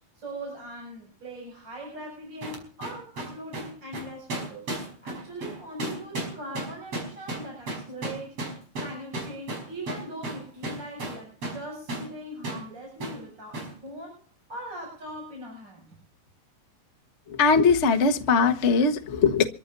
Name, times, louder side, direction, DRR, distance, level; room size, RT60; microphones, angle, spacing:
voice 1, 0.2-4.7 5.0-8.4 8.8-15.9, right 1 dB, 35° right, 8.2 m, -40 dB
sound 1, 2.4-11.6 11.9-12.1 12.4-12.7 13.0-13.2 13.5-13.8, right 1 dB, 50° right, 6.2 m, -34 dB
voice 2, 17.3-19.5, left 5 dB, 55° left, 0.8 m, -20 dB
27.0 x 14.5 x 2.7 m
omnidirectional pair, 3.6 m